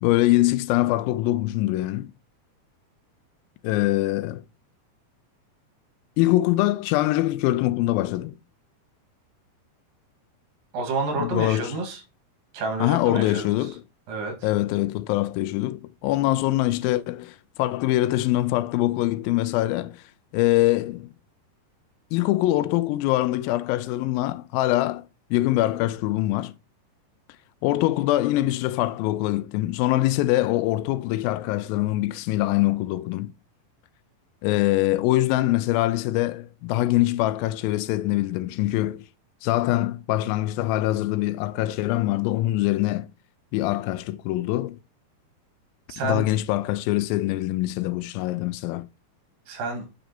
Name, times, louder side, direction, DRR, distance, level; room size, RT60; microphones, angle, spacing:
voice 1, 0.0-2.1 3.6-4.4 6.2-8.3 11.2-11.7 12.8-13.8 14.4-20.0 20.3-21.1 22.1-26.6 27.6-33.3 34.4-39.1 39.4-43.1 43.5-44.8 46.0-48.9, left 16 dB, 90° left, 2.3 m, -23 dB
voice 2, 10.7-12.0 12.5-13.5 14.1-14.4 45.9-46.3 49.5-49.9, right 3 dB, 75° right, 3.5 m, -29 dB
7.6 x 5.3 x 4.3 m
omnidirectional pair, 4.1 m